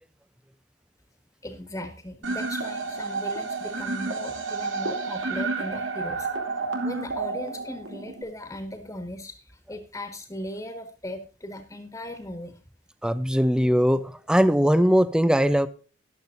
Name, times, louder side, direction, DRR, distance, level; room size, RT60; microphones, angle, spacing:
voice 1, 1.4-6.3 6.8-12.6, left 1 dB, 20° left, 1.7 m, -38 dB
sound 1, 2.2-8.2, right 3 dB, 90° right, 2.8 m, -30 dB
voice 2, 13.0-15.7, equal, 5° right, 0.6 m, -20 dB
14.0 x 11.5 x 2.6 m
head